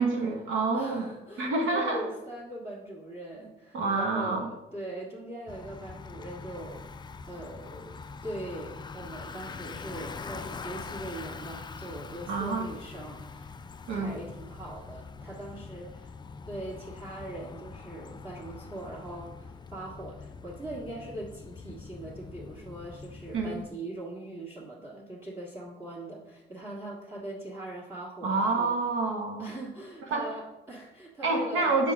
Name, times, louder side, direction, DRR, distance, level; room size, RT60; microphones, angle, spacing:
voice 1, 0.0-1.1 1.4-2.0 3.7-4.5 12.3-12.7 13.9-14.1 23.3-23.6 28.2-29.5 30.1-30.3 31.2-31.9, right 3 dB, 85° right, 3 dB, 1.3 m, -28 dB
voice 2, 0.7-6.8 7.3-13.5 13.9-16.1 16.5-28.7 29.4-31.8, right 1 dB, 15° right, -6 dB, 1.7 m, -41 dB
Bicycle, 5.5-23.7, left 4 dB, 25° left, 0.3 m, -43 dB
6.5 x 5.3 x 3.5 m, 0.99 s
cardioid pair, 90°, 20 cm